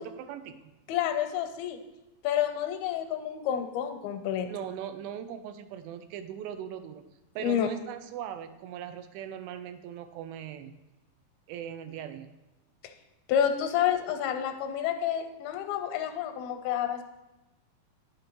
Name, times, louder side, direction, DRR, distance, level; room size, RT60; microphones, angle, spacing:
voice 1, 0.0-0.7 4.5-7.0 7.4-10.7 11.5-12.4, right 9 dB, 85° right, 9 dB, 2.5 m, -40 dB
voice 2, 0.9-1.8 2.2-4.5 7.4-7.7 12.8-12.9 13.3-17.0, left 9 dB, 85° left, 7 dB, 2.6 m, -29 dB
10.0 x 6.5 x 3.0 m, 1.1 s
omnidirectional pair, 4.2 m